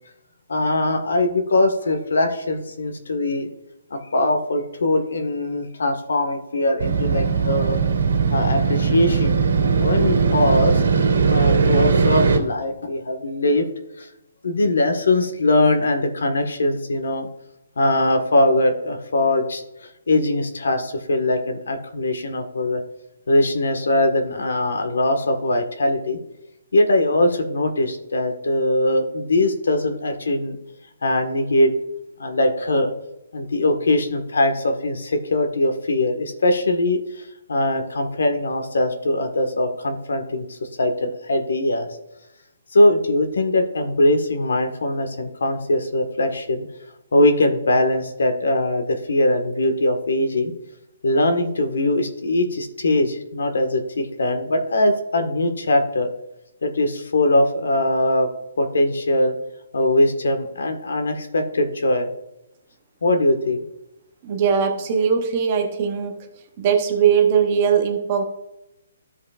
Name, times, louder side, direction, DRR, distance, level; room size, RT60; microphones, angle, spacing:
voice 1, 0.5-3.5 3.9-7.8 8.3-9.4 9.8-10.8 11.2-13.7 14.0-14.1 14.4-17.3 17.8-22.8 23.3-26.2 26.7-30.5 31.0-31.7 32.2-32.9 33.3-37.2 37.5-41.9 42.7-46.7 47.1-50.5 51.0-56.1 56.6-58.3 58.6-59.3 59.7-62.1 63.0-63.6, left 1 dB, 80° left, 5 dB, 1.5 m, -21 dB
Motorcycle, 6.8-12.4, right 5 dB, 70° right, 2.5 m, -19 dB
voice 2, 64.2-66.1 66.6-68.2, right 7 dB, 20° right, 4 dB, 0.8 m, -20 dB
14.5 x 5.3 x 2.5 m, 0.89 s
hypercardioid pair, 180°, 0 cm